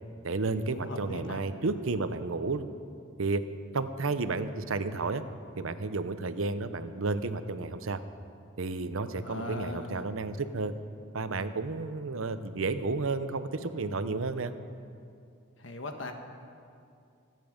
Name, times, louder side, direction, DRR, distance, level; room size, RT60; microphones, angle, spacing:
voice 1, 0.2-2.6 3.2-3.4 3.7-5.2 5.6-8.0 8.6-10.7 11.1-14.5, right 3 dB, 80° right, 11 dB, 0.7 m, -32 dB
voice 2, 0.7-1.4 9.2-10.1 15.6-16.1, left 2 dB, 70° left, 5 dB, 1.4 m, -39 dB
24.5 x 9.3 x 5.2 m, 2.4 s
head